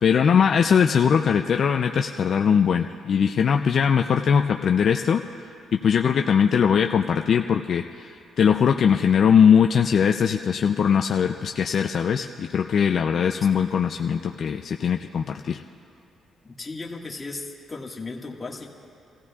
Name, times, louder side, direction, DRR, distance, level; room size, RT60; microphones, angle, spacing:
voice 1, 0.0-5.2 5.8-15.6, left 7 dB, 55° left, 4 dB, 0.4 m, -20 dB
voice 2, 16.4-18.7, left 3 dB, 25° left, -1 dB, 1.7 m, -36 dB
29.5 x 15.0 x 2.4 m, 2.6 s
cardioid pair, 90°, 0 cm